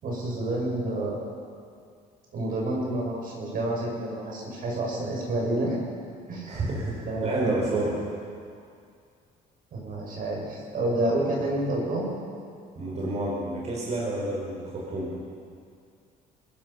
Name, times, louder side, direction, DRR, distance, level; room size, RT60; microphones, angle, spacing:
voice 1, 0.0-1.3 2.3-5.8 6.3-6.6 7.0-7.5 9.7-12.1, right 1 dB, 55° right, -2 dB, 6.9 m, -29 dB
voice 2, 6.5-8.0 12.8-15.1, right 2 dB, 40° right, -5 dB, 5.8 m, -29 dB
23.0 x 19.5 x 5.8 m, 2.3 s
cardioid pair, 110°, 17 cm